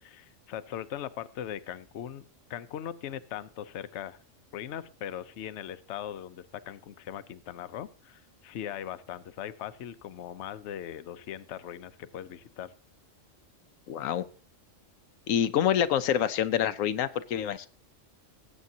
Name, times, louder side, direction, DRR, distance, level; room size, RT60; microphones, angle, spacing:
voice 1, 0.0-2.2 2.5-4.2 4.5-12.7, left 10 dB, 65° left, 12 dB, 0.9 m, -40 dB
voice 2, 13.9-14.2 15.3-17.7, left 10 dB, 90° left, 12 dB, 1.1 m, -26 dB
18.5 x 8.2 x 2.8 m, 0.38 s
omnidirectional pair, 1.3 m